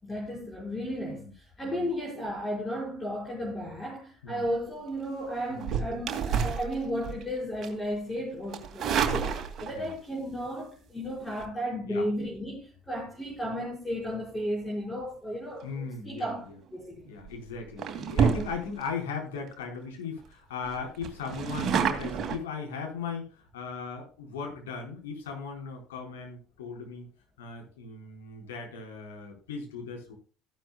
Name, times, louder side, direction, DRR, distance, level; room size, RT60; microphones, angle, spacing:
voice 1, 0.0-17.1, equal, 15° left, 5.0 m, -34 dB
sound 1, 5.6-7.3 7.6-7.9 8.5-9.9 11.2-11.5 16.5-16.8 17.3-17.4 17.8-18.9 19.4-19.5 19.8-19.9 20.2-20.3 20.6-22.4, right 7 dB, 40° right, 2.3 m, -29 dB
voice 2, 15.6-16.5 17.0-27.1 27.4-30.1, left 5 dB, 75° left, 4.2 m, -38 dB
15.0 x 12.0 x 2.2 m
figure-of-eight pair, 60°, 0 cm